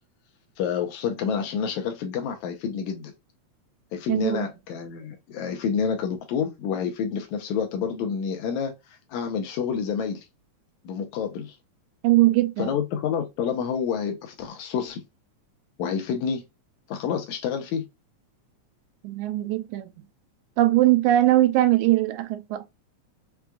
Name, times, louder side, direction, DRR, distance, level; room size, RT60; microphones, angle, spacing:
voice 1, 0.6-3.1 3.9-10.3 10.8-11.6 12.6-15.0 15.8-16.4 16.9-17.9, left 7 dB, 80° left, 2.0 m, -28 dB
voice 2, 4.1-4.5 12.0-12.7 19.0-19.9 20.6-22.7, right 15 dB, 85° right, 2.0 m, -21 dB
5.8 x 2.2 x 2.3 m
omnidirectional pair, 3.3 m